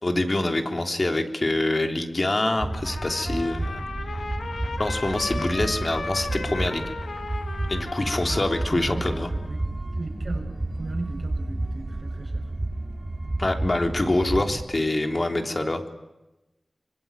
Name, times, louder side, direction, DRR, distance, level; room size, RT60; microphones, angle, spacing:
voice 1, 0.0-3.8 4.8-6.8 7.7-9.3 13.4-15.8, left 2 dB, 45° left, 5 dB, 3.6 m, -25 dB
sound 1, 2.6-14.6, right 2 dB, 45° right, 4.5 m, -31 dB
Trumpet, 2.7-9.5, left 3 dB, 90° left, 3.1 m, -36 dB
voice 2, 8.6-9.7 9.9-12.5, right 3 dB, 60° right, 0 dB, 7.0 m, -37 dB
25.5 x 24.5 x 9.3 m, 1.0 s
cardioid pair, 45°, 0 cm